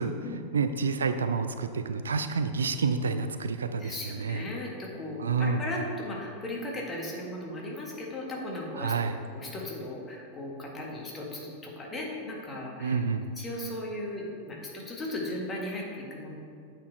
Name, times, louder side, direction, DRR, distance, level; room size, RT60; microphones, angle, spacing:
voice 1, 0.5-4.4 5.2-5.6 8.8-9.2 12.8-13.3, right 5 dB, 70° right, 9 dB, 0.3 m, -29 dB
voice 2, 3.8-8.9 9.3-13.0 13.4-16.3, left 1 dB, 20° left, -2 dB, 1.6 m, -37 dB
8.1 x 4.5 x 4.6 m, 2.4 s
figure-of-eight pair, 90°, 0 cm